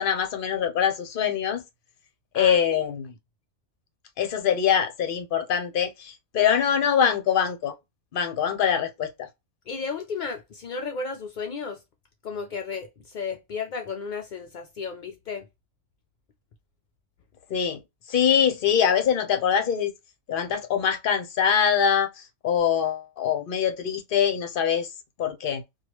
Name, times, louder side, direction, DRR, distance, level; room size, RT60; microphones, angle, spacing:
voice 1, 0.0-1.6 2.3-3.1 4.2-7.7 8.1-9.3 17.5-17.8 18.1-19.9 20.3-24.9 25.2-25.6, left 8 dB, 50° left, 0.7 m, -23 dB
voice 2, 9.7-11.8 12.2-15.5, left 5 dB, 75° left, 0.4 m, -33 dB
3.1 x 2.4 x 3.0 m
omnidirectional pair, 1.4 m